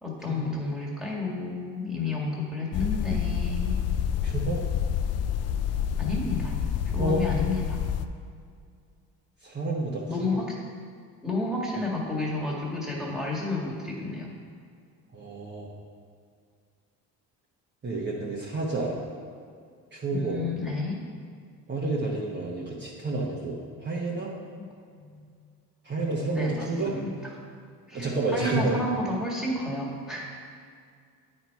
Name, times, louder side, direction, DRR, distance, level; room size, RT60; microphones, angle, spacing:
voice 1, 0.0-3.8 6.0-6.6 6.9-7.8 10.1-10.6 11.2-14.3 20.1-21.0 24.6-24.7 24.9-25.3 26.4-27.1 27.9-30.3, left 2 dB, ahead, -4 dB, 1.8 m, -31 dB
sound 1, 2.7-8.1, left 8 dB, 45° left, 0.4 m, -28 dB
voice 2, 4.2-4.6 7.0-7.2 9.4-10.0 15.1-15.7 17.8-19.0 19.9-20.4 21.7-24.3 25.8-26.9 27.9-28.8, right 2 dB, 30° right, -5 dB, 1.2 m, -29 dB
9.1 x 4.4 x 4.6 m, 2.2 s
cardioid pair, 95°, 36 cm